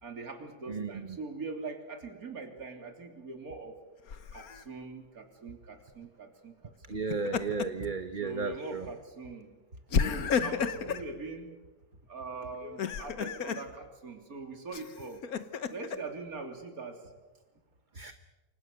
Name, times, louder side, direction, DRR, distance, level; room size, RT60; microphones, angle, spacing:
voice 1, 0.0-3.8 4.3-7.5 8.2-9.5 10.0-11.5 12.1-15.2 15.7-17.0, right 3 dB, 60° right, 4 dB, 3.7 m, -42 dB
voice 2, 0.7-1.2 6.9-8.9 17.9-18.1, right 4 dB, 35° right, 9 dB, 1.0 m, -34 dB
Laughter, 4.1-4.6 6.9-7.9 8.3-8.4 9.9-11.1 12.6-13.6 14.7-16.0, left 6 dB, 60° left, 1.6 m, -32 dB
28.5 x 25.0 x 6.6 m, 1.1 s
omnidirectional pair, 1.8 m